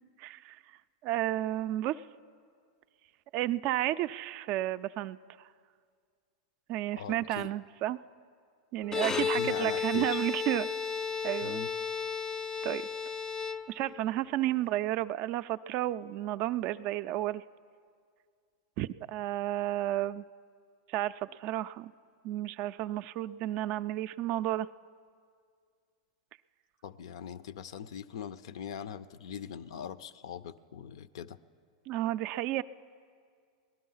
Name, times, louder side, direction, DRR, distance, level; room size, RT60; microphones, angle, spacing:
voice 1, 0.2-0.6 1.0-2.0 3.3-5.2 6.7-8.0 8.7-10.7 11.2-11.6 12.6-12.9 13.7-17.4 18.8-20.2 20.9-21.9 22.2-24.7 31.9-32.6, right 14 dB, 45° right, 14 dB, 0.3 m, -32 dB
voice 2, 6.9-7.5 8.9-10.2 11.4-11.7 26.8-31.4, left 8 dB, 70° left, 16 dB, 0.5 m, -41 dB
Bowed string instrument, 8.8-14.1, left 6 dB, 20° left, 0.4 m, -33 dB
18.5 x 12.0 x 5.6 m, 2.1 s
hypercardioid pair, 105°, 3 cm